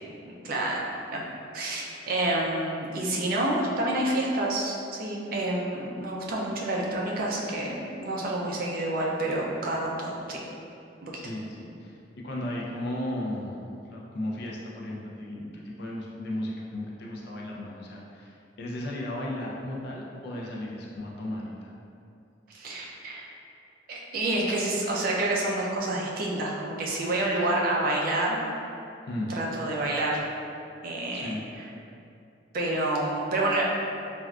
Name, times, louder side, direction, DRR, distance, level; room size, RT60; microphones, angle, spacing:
voice 1, 0.3-0.8 1.1-1.2 1.5-10.4 11.0-11.1 22.5-23.3 23.9-28.5 29.3-30.2 30.8-31.3 32.5-33.7, right 1 dB, 55° right, -3 dB, 0.4 m, -28 dB
voice 2, 11.1-12.0 12.2-13.6 13.9-21.7 29.1-29.3 31.1-31.5, left 1 dB, 60° left, -3 dB, 0.5 m, -35 dB
3.3 x 2.4 x 2.3 m, 2.6 s
head